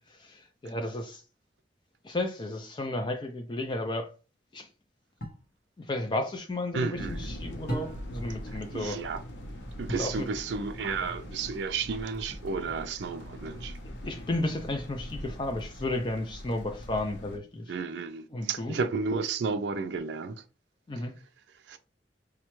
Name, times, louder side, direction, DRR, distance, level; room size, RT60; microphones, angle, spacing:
voice 1, 0.1-1.2 2.0-4.1 4.5-4.7 5.8-9.0 9.9-10.3 14.0-17.6 18.3-18.8 20.9-21.1, left 2 dB, 25° left, 0.4 m, -33 dB
sound 1, 5.2-5.5 7.7-8.3 9.9-10.2 12.3-12.8, equal, 55° left, 1.0 m, -37 dB
voice 2, 6.7-7.2 8.5-9.2 9.8-13.8 17.7-20.4 21.7-21.8, right 4 dB, 80° right, 0.4 m, -32 dB
sound 2, 6.9-17.4, equal, 85° left, 0.7 m, -42 dB
4.8 x 2.2 x 3.0 m
head